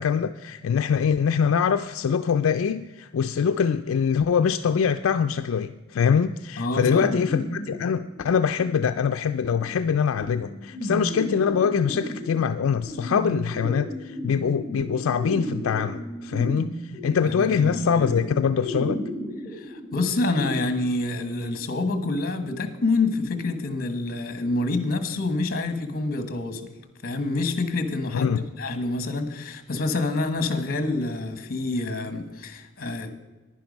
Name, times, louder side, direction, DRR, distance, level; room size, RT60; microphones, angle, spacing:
voice 1, 0.0-19.0 28.1-28.4, left 6 dB, 75° left, 9 dB, 0.4 m, -24 dB
voice 2, 6.6-7.2 17.2-18.3 19.5-26.6 27.0-33.1, left 2 dB, 45° left, 9 dB, 1.3 m, -27 dB
sound 1, 6.8-20.5, equal, 5° left, 3.3 m, -34 dB
10.5 x 10.5 x 5.3 m, 1.2 s
head